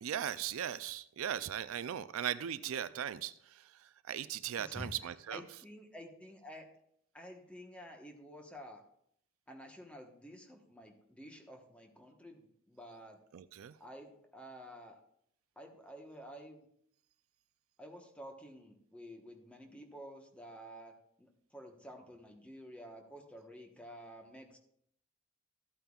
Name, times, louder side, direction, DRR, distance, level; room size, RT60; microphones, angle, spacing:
voice 1, 0.0-5.4 13.3-13.7, right 9 dB, 75° right, 0.4 m, -38 dB
voice 2, 4.6-6.7 7.1-8.8 9.5-13.2 13.8-15.0 15.6-16.7 17.8-24.6, equal, 5° left, 1.1 m, -51 dB
14.0 x 9.0 x 2.4 m
head